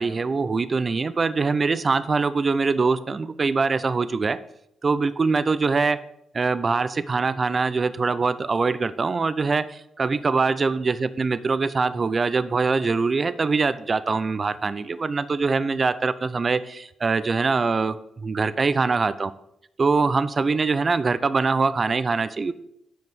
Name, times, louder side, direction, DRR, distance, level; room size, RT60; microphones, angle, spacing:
voice 1, 0.0-4.4 4.8-6.0 6.3-19.3 19.8-22.5, right 4 dB, 40° right, 15 dB, 0.5 m, -23 dB
7.8 x 5.2 x 6.2 m, 0.77 s
cardioid pair, 70°, 0 cm